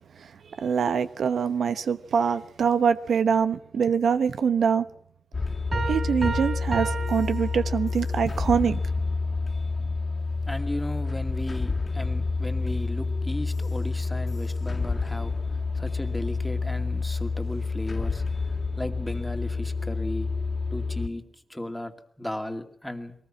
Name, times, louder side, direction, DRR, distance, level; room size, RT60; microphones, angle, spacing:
voice 1, 0.6-4.8 5.9-8.8, right 6 dB, 80° right, 1.0 m, -24 dB
sound 1, 5.3-21.1, left 4 dB, 40° left, 2.2 m, -29 dB
Piano, 5.7-8.2, right 3 dB, 35° right, 7.5 m, -32 dB
voice 2, 10.5-15.3 15.8-18.2 18.8-20.3 20.7-21.2 21.5-23.1, left 1 dB, 5° left, 2.3 m, -35 dB
22.5 x 19.5 x 7.5 m
wide cardioid pair, 95°, 0 cm